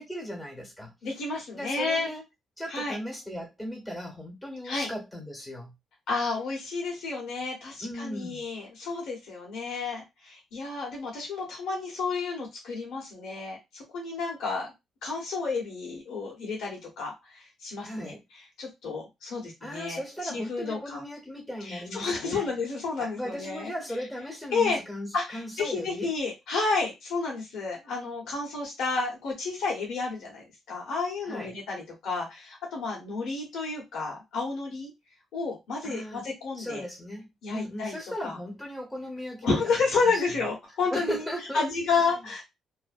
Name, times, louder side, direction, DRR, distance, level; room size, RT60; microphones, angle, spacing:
voice 1, 0.0-0.9 1.5-2.2 2.6-5.7 7.8-8.4 17.8-18.2 19.6-22.5 23.0-26.1 31.2-31.5 35.8-36.2 36.6-39.6 40.0-40.2 40.9-41.6, equal, 5° left, 1 dB, 1.3 m, -37 dB
voice 2, 1.0-2.1 2.7-3.0 4.6-4.9 6.1-14.7 15.0-18.1 18.6-21.0 21.6-23.7 24.5-24.8 25.1-34.9 35.3-36.8 37.4-38.0 38.2-38.4 39.4-41.2 41.5-42.4, left 4 dB, 80° left, -1 dB, 1.1 m, -31 dB
2.5 x 2.1 x 2.5 m, 0.21 s
cardioid pair, 90°, 0 cm